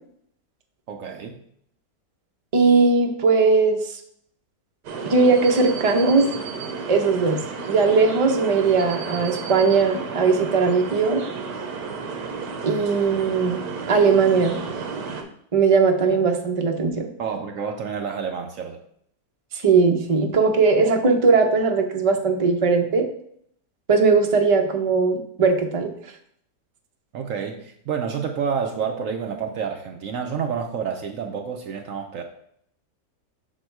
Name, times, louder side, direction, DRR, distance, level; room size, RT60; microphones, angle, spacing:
voice 1, 0.9-1.4 17.2-18.8 27.1-32.2, right 6 dB, 65° right, 5 dB, 0.8 m, -29 dB
voice 2, 2.5-3.8 5.0-6.3 6.9-11.2 12.6-13.6 13.9-14.6 15.5-17.1 19.5-23.1 23.9-25.9, right 4 dB, 45° right, 3 dB, 0.4 m, -19 dB
sound 1, 4.8-15.2, right 5 dB, 85° right, 1.5 m, -32 dB
6.2 x 4.3 x 4.5 m, 0.69 s
omnidirectional pair, 1.8 m